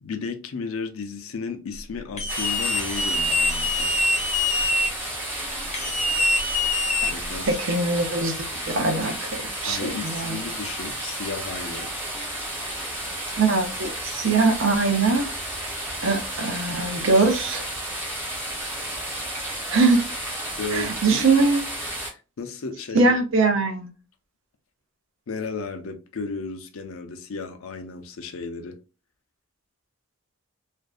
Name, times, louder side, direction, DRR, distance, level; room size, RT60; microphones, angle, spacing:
voice 1, 0.0-4.1 7.0-7.6 9.6-11.9 20.6-21.2 22.0-23.1 25.3-28.8, left 4 dB, 70° left, 0.5 m, -34 dB
sound 1, 2.2-4.9 5.7-7.5, left 2 dB, 30° left, 0.6 m, -24 dB
sound 2, 2.3-22.1, right 1 dB, 10° right, 0.6 m, -32 dB
voice 2, 7.5-9.3 9.6-10.4 13.4-15.2 16.0-17.6 19.7-20.0 20.7-21.6 22.9-23.9, right 3 dB, 60° right, 0.5 m, -22 dB
2.5 x 2.2 x 2.3 m
head